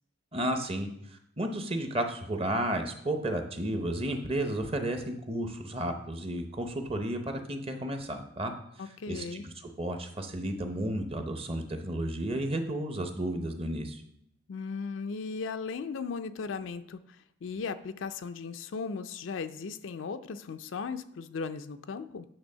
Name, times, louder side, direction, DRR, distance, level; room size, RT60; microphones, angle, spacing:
voice 1, 0.3-8.5 8.8-14.0, right 1 dB, 30° right, 5 dB, 0.7 m, -33 dB
voice 2, 8.8-9.5 14.5-17.0 17.4-22.3, left 5 dB, 80° left, 10 dB, 0.4 m, -37 dB
8.8 x 3.4 x 5.5 m, 0.75 s
head